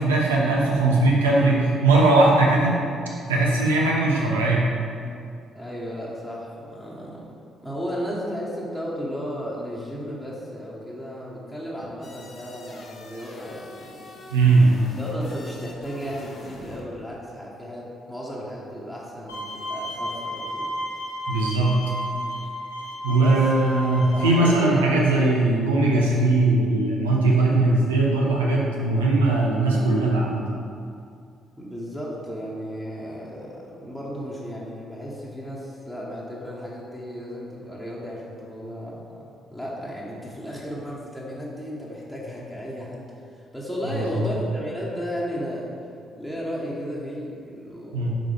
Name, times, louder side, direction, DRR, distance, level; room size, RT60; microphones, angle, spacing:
voice 1, 0.0-2.8 3.3-4.7 14.3-14.8 21.3-21.8 23.0-30.4 43.9-44.3 47.9-48.1, right 2 dB, 75° right, -3 dB, 0.8 m, -20 dB
voice 2, 3.3-3.6 5.5-7.2 7.6-14.1 15.0-20.7 23.1-23.4 24.1-24.8 25.2-25.3 31.6-39.2 39.5-43.0 43.3-45.7 46.1-48.1, equal, ahead, -6 dB, 1.4 m, -34 dB
sound 1, 12.0-16.9, left 2 dB, 45° left, 1.0 m, -44 dB
Bowed string instrument, 19.3-24.3, equal, 80° left, 0.9 m, -32 dB
7.5 x 5.0 x 3.4 m, 2.4 s
figure-of-eight pair, 45°, 0 cm